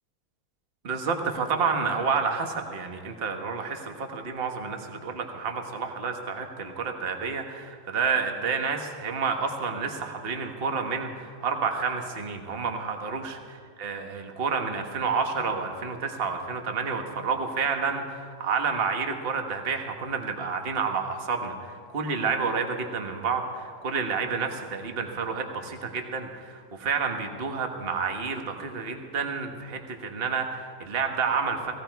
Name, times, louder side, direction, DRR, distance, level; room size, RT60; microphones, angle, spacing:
voice 1, 0.8-31.7, right 5 dB, 40° right, 4 dB, 1.3 m, -29 dB
18.0 x 15.5 x 4.6 m, 2.1 s
omnidirectional pair, 1.7 m